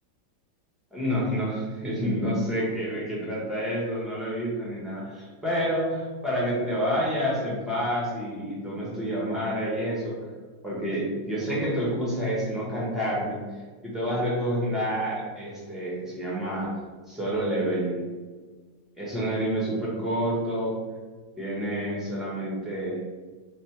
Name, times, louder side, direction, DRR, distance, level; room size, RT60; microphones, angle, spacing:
voice 1, 0.9-10.2 10.6-13.4 13.8-16.7 17.1-18.0 19.0-20.8 21.4-23.0, equal, ahead, -7 dB, 0.4 m, -28 dB
3.4 x 2.4 x 4.3 m, 1.4 s
omnidirectional pair, 2.1 m